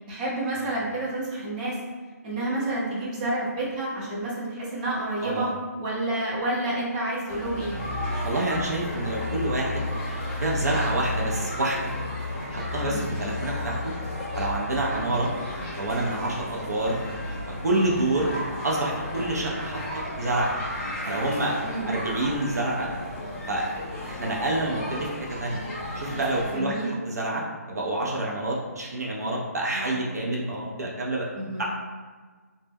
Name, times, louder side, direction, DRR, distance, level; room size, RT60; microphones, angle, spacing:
voice 1, 0.1-1.8 2.2-5.5 5.8-7.7 12.8-13.0 21.6-21.9 26.4-26.9 29.7-30.0 31.4-31.6, right 1 dB, 30° right, -6 dB, 0.7 m, -29 dB
sound 1, 7.3-26.5, left 1 dB, 10° left, 0.4 m, -33 dB
voice 2, 8.2-9.8 10.4-11.9 12.5-13.9 14.3-15.3 15.8-17.0 17.6-18.3 18.6-20.5 21.0-21.6 21.9-22.9 23.5-23.6 24.1-25.6 26.0-27.4 27.7-31.3 31.6-31.7, right 1 dB, 70° right, -3 dB, 0.6 m, -27 dB
2.2 x 2.1 x 3.3 m, 1.4 s
hypercardioid pair, 160°, 9 cm